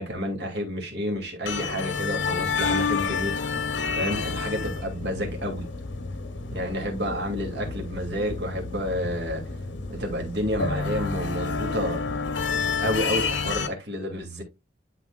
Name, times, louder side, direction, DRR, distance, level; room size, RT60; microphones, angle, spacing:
voice 1, 0.0-3.4 4.0-5.7 6.5-9.4 9.9-12.0 12.8-14.4, equal, 65° right, 2.6 m, -30 dB
sound 1, 1.5-13.7, left 4 dB, 85° left, 1.0 m, -29 dB
11.0 x 4.3 x 2.3 m
head